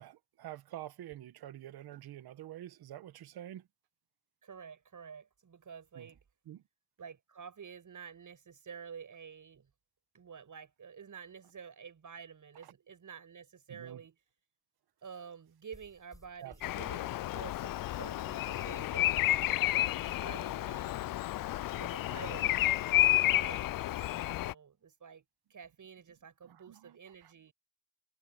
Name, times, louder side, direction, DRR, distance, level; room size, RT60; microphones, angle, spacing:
voice 1, 0.0-3.6 6.0-6.1 6.5-6.6 13.7-14.0 16.4-16.5 18.5-18.7 23.2-23.4 26.7-27.0 27.2-27.5, right 13 dB, 85° right, 1.5 m, -47 dB
voice 2, 4.4-6.2 7.0-9.7 10.1-14.2 15.0-21.0 21.8-27.5, right 6 dB, 55° right, 7.1 m, -50 dB
sound 1, 15.7-24.2, left 1 dB, 10° left, 6.1 m, -59 dB
Bird vocalization bird call bird song, 16.6-24.5, left 15 dB, 65° left, 0.5 m, -31 dB
supercardioid pair, 55°, 37 cm